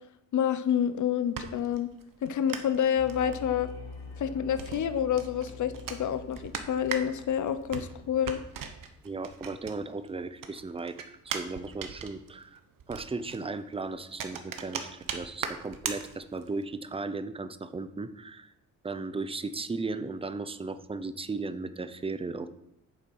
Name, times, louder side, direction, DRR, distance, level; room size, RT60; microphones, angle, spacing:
voice 1, 0.3-1.9 2.2-3.7 4.2-8.4, left 9 dB, 55° left, 12 dB, 0.8 m, -28 dB
sound 1, 0.9-10.1 10.4-16.6, right 7 dB, 70° right, 1.2 m, -40 dB
sound 2, 3.0-9.8, left 4 dB, 85° left, 3.7 m, -46 dB
voice 2, 9.0-12.6 12.9-18.5 18.8-22.5, right 3 dB, 15° right, 12 dB, 0.6 m, -36 dB
9.0 x 7.3 x 5.5 m, 0.82 s
cardioid pair, 125°, 35 cm